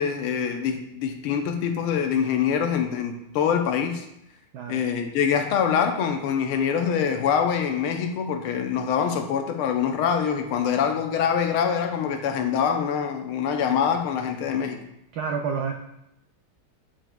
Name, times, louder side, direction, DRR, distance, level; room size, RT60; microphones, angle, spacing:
voice 1, 0.0-4.0 4.7-14.8, left 7 dB, 85° left, 5 dB, 1.6 m, -24 dB
voice 2, 15.1-15.7, right 5 dB, 80° right, 3 dB, 0.8 m, -28 dB
10.0 x 4.4 x 2.2 m, 0.83 s
omnidirectional pair, 2.3 m